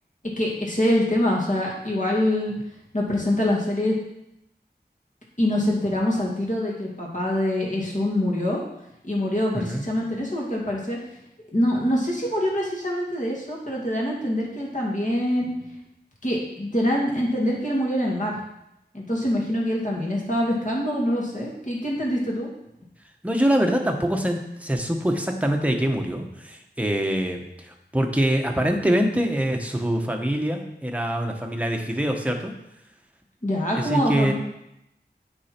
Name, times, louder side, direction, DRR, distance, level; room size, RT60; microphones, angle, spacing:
voice 1, 0.4-2.5 2.9-3.9 5.4-8.6 9.0-11.0 11.5-15.5 16.2-18.4 18.9-22.5 33.4-34.3, left 1 dB, 45° left, -3 dB, 2.3 m, -24 dB
voice 2, 23.2-32.5 33.8-34.3, right 1 dB, 10° right, 3 dB, 1.1 m, -24 dB
8.3 x 4.7 x 4.4 m, 0.84 s
wide cardioid pair, 40°, 17 cm